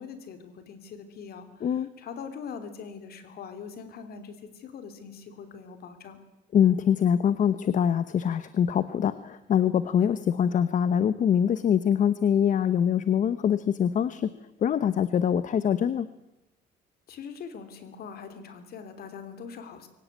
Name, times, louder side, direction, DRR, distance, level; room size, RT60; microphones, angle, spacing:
voice 1, 0.0-6.2 17.1-19.9, left 6 dB, 60° left, 10 dB, 3.3 m, -42 dB
voice 2, 6.5-14.3 14.6-16.1, left 8 dB, 45° left, 14 dB, 0.9 m, -24 dB
23.0 x 18.0 x 9.5 m, 0.93 s
cardioid pair, 140°, 18 cm